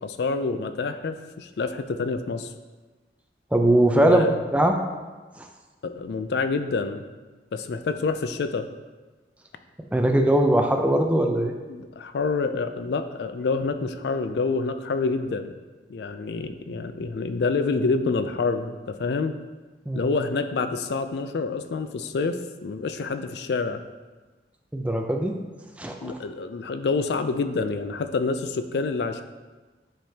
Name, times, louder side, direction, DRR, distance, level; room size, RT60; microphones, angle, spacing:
voice 1, 0.0-2.5 3.9-4.4 5.8-7.0 7.5-8.7 11.7-15.5 15.9-19.3 19.9-23.8 26.0-29.2, left 4 dB, 65° left, 9 dB, 0.4 m, -27 dB
voice 2, 3.5-4.8 5.4-5.5 9.9-11.5 19.9-20.1 24.7-25.4 25.8-26.2, right 1 dB, 5° right, 3 dB, 0.4 m, -21 dB
10.0 x 3.7 x 2.8 m, 1.3 s
head